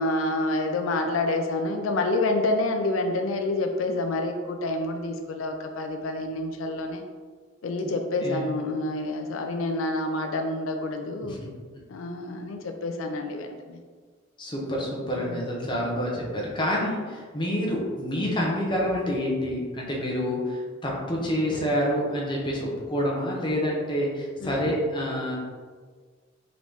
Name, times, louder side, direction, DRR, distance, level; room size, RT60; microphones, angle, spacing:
voice 1, 0.0-7.0 7.6-11.4 11.9-13.8 15.2-15.4 18.2-18.4 24.4-24.7, left 2 dB, 85° left, 4 dB, 0.4 m, -28 dB
voice 2, 14.4-25.4, equal, 25° left, -3 dB, 0.8 m, -28 dB
3.9 x 3.0 x 3.5 m, 1.5 s
head